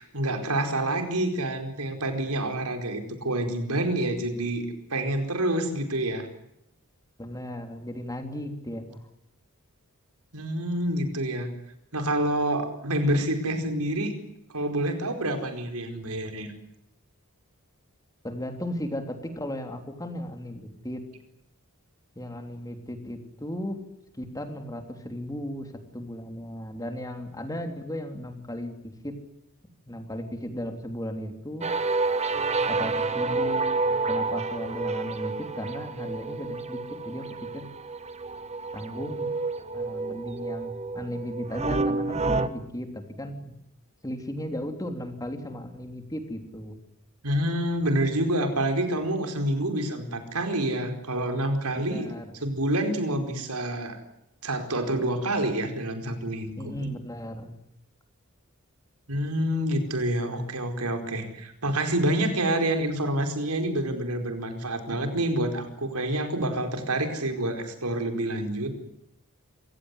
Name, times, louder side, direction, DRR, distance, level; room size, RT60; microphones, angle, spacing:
voice 1, 0.0-6.3 10.3-11.5 11.9-14.1 14.5-16.5 47.2-52.1 52.4-54.0 54.4-56.7 59.1-68.7, right 1 dB, 90° right, 5 dB, 4.7 m, -27 dB
voice 2, 7.2-9.0 18.2-21.0 22.2-23.8 24.2-28.7 29.0-29.2 29.9-31.7 32.7-33.8 34.1-37.3 37.5-37.7 38.7-39.3 39.7-43.6 44.0-46.8 51.8-52.3 56.6-57.5, equal, 15° left, 5 dB, 3.4 m, -36 dB
sound 1, 31.6-42.5, right 3 dB, 30° right, 1.3 m, -29 dB
27.0 x 17.0 x 9.9 m, 0.82 s
head